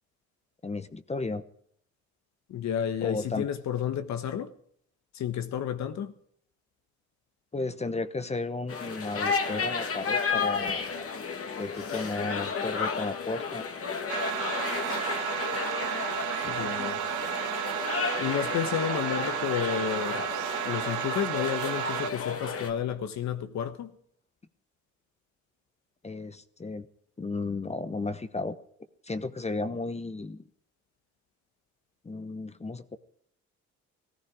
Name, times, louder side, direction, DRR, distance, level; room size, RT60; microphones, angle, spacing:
voice 1, 0.6-1.4 3.0-3.5 7.5-11.1 11.6-13.6 26.0-26.9 27.2-28.6 29.0-30.4 32.0-33.0, left 3 dB, 20° left, 1.0 m, -34 dB
voice 2, 2.5-4.5 5.1-6.1 16.4-17.0 18.2-20.3 20.6-24.0, left 9 dB, 65° left, 1.3 m, -31 dB
sound 1, 8.7-22.7, left 5 dB, 50° left, 2.1 m, -33 dB
sound 2, 14.1-22.1, right 14 dB, 85° right, 0.8 m, -33 dB
16.5 x 14.5 x 4.9 m
cardioid pair, 80°, 29 cm